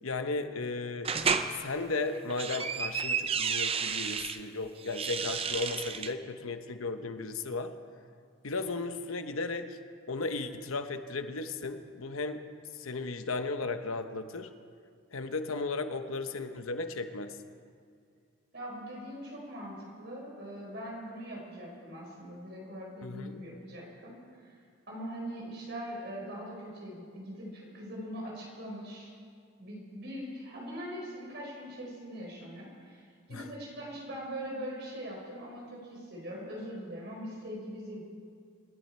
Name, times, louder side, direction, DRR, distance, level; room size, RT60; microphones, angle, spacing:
voice 1, 0.0-1.1 1.6-7.7 8.4-9.8 10.1-12.4 12.8-14.5 15.1-17.4 23.0-23.4 33.3-33.5, left 3 dB, 85° left, 8 dB, 1.0 m, -35 dB
sound 1, 1.0-1.5 2.1-4.4 4.8-6.1, right 6 dB, 30° right, 0.6 m, -31 dB
voice 2, 18.5-24.6 24.9-29.1 29.6-38.0, equal, 55° right, -2 dB, 4.7 m, -42 dB
26.0 x 11.5 x 4.4 m, 2.2 s
head